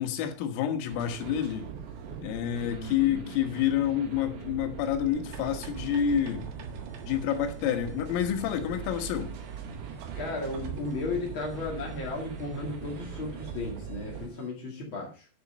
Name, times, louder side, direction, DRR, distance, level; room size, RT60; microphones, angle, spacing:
voice 1, 0.0-1.7 2.2-6.5 7.1-9.3, left 9 dB, 80° left, 4.0 m, -28 dB
sound 1, 0.9-14.3, right 7 dB, 90° right, 1.7 m, -41 dB
voice 2, 2.6-3.4 10.1-15.3, left 3 dB, 50° left, 1.4 m, -35 dB
sound 2, 5.3-13.8, right 8 dB, 65° right, 3.2 m, -46 dB
sound 3, 6.7-14.5, right 1 dB, 45° right, 1.5 m, -50 dB
10.5 x 7.2 x 5.3 m
omnidirectional pair, 6.0 m